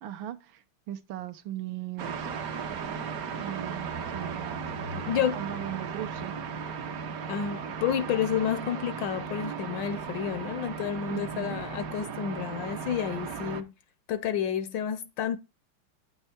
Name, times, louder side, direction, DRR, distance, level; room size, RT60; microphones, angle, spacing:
voice 1, 0.0-2.3 3.3-6.3 11.1-11.6, right 12 dB, 75° right, 1.3 m, -39 dB
sound 1, 2.0-13.6, right 5 dB, 60° right, 1.0 m, -36 dB
voice 2, 5.1-5.4 7.3-13.7 14.1-15.4, left 9 dB, 75° left, 1.1 m, -30 dB
8.9 x 5.6 x 4.3 m
omnidirectional pair, 2.3 m